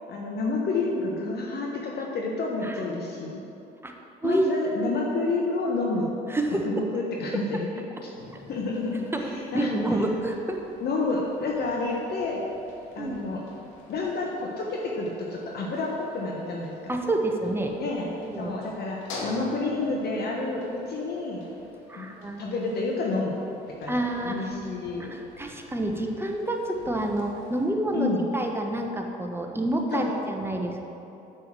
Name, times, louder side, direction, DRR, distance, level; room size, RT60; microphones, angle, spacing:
voice 1, 0.1-3.4 4.2-6.1 6.6-8.1 8.5-10.0 10.8-12.5 12.9-13.4 13.9-16.7 17.8-21.4 21.9-22.1 22.4-23.3 23.8-25.1 27.9-28.2 29.9-30.1, left 3 dB, 55° left, -1 dB, 1.4 m, -29 dB
voice 2, 2.6-3.0 3.8-3.9 4.2-4.4 4.7-5.0 6.3-6.8 9.1-9.2 9.5-10.6 13.0-13.2 16.9-17.7 18.1-18.5 21.9-22.4 23.9-24.5 25.1-30.8, right 1 dB, 10° right, 2 dB, 1.3 m, -28 dB
sound 1, 8.1-27.7, left 2 dB, 85° left, 2.1 m, -47 dB
7.5 x 7.1 x 7.6 m, 2.9 s
supercardioid pair, 75°, 19 cm